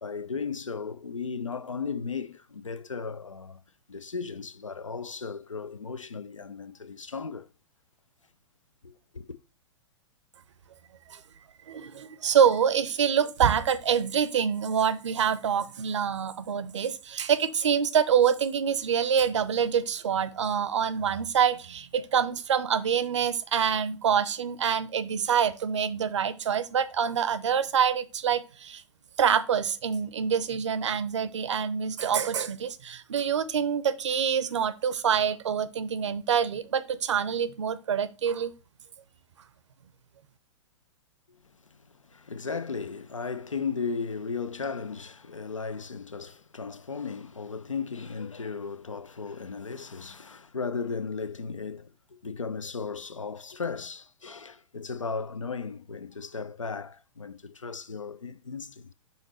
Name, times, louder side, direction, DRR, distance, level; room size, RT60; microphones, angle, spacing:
voice 1, 0.0-3.6 3.9-7.5 8.8-9.3 41.7-58.9, left 5 dB, 90° left, 0.5 m, -36 dB
voice 2, 11.7-28.8 29.2-38.5, right 7 dB, 70° right, 0.7 m, -26 dB
5.7 x 4.0 x 4.1 m
figure-of-eight pair, 110°, 16 cm